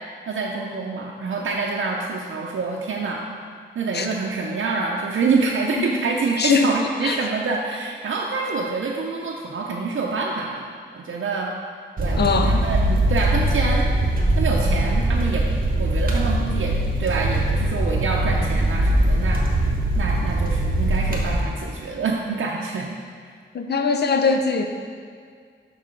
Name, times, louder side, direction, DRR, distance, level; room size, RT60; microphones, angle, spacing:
voice 1, 0.3-3.2 3.7-10.7 10.9-11.5 12.0-13.9 14.4-15.5 15.8-23.0, right 4 dB, 80° right, -2 dB, 0.6 m, -26 dB
voice 2, 6.4-6.7 7.0-7.2 12.2-12.6 23.5-24.7, left 4 dB, 55° left, 5 dB, 0.5 m, -21 dB
sound 1, 12.0-21.4, right 1 dB, 45° right, 1.1 m, -21 dB
6.0 x 5.5 x 4.4 m, 2.1 s
wide cardioid pair, 100°, 20 cm